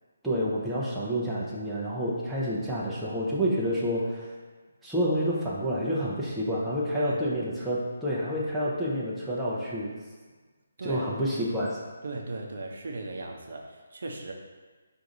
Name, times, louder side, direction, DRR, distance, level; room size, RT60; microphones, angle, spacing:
voice 1, 0.2-4.3 4.8-9.9 10.8-11.8, equal, ahead, -9 dB, 0.6 m, -29 dB
voice 2, 12.0-14.3, right 2 dB, 60° right, 1 dB, 0.6 m, -36 dB
4.7 x 2.6 x 3.9 m, 1.4 s
hypercardioid pair, 160°, 0 cm